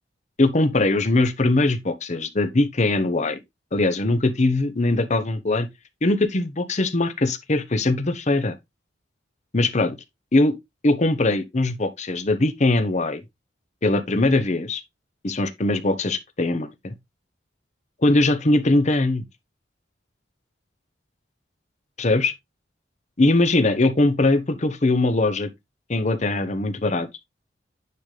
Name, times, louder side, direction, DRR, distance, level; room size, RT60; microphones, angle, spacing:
voice 1, 0.4-3.4 3.7-5.7 6.0-8.6 9.5-10.0 10.3-10.5 10.8-13.2 13.8-14.8 15.2-16.9 18.0-19.2 22.0-22.3 23.2-25.5 25.9-27.1, left 2 dB, 40° left, 0.8 m, -21 dB
9.3 x 3.8 x 3.2 m
head